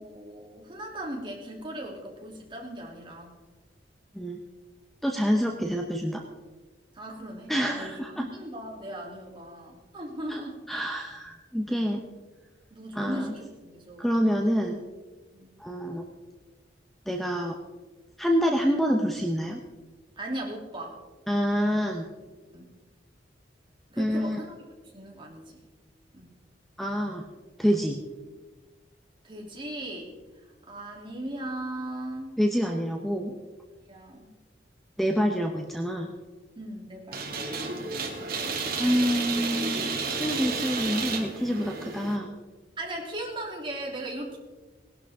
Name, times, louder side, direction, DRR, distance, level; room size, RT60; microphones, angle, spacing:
voice 1, 0.0-3.4 5.4-5.5 6.9-10.8 12.7-14.1 15.3-15.5 20.2-21.0 22.5-22.7 23.9-24.5 24.9-25.6 26.1-26.3 29.2-30.1 30.7-32.4 33.7-34.3 36.6-37.3 40.1-40.7 42.8-44.4, right 1 dB, 30° right, -1 dB, 3.0 m, -38 dB
voice 2, 5.0-6.2 7.5-8.2 10.3-10.4 10.7-12.0 12.9-13.3 14.0-14.8 15.6-16.0 17.1-17.5 18.2-19.6 21.3-22.0 24.0-24.4 26.8-27.3 27.6-28.0 32.4-33.4 35.0-36.1 38.8-42.4, equal, ahead, 2 dB, 0.8 m, -27 dB
sound 1, 37.1-42.2, right 4 dB, 55° right, 2.2 m, -32 dB
19.0 x 12.0 x 3.6 m, 1.3 s
head